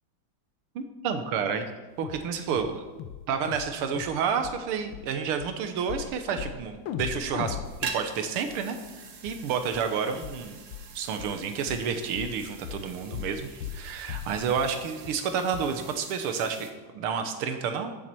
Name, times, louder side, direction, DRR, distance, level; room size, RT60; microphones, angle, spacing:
voice 1, 0.8-1.7 2.0-2.8 3.3-8.8 9.2-10.6 11.0-17.9, right 6 dB, 80° right, 7 dB, 1.9 m, -30 dB
sound 1, 2.0-2.3 2.5-2.7 3.0-3.2 3.5-3.7 4.0-4.2 4.4-4.6 4.9-5.0 5.4-5.5 5.9-6.1 6.4-6.6 6.9-8.9 9.3-9.4 9.7-9.8 10.2-10.4 10.7-10.9 11.2-11.3 11.7-11.8 12.2-12.4 12.6-12.8 13.1-13.4 13.6-13.8 14.1-14.3 14.6-14.7 15.1-15.2 15.5-15.6, left 10 dB, 85° left, 1.6 m, -37 dB
sound 2, 7.6-16.7, right 5 dB, 55° right, 0.9 m, -44 dB
13.5 x 7.1 x 4.5 m, 1.2 s
omnidirectional pair, 2.4 m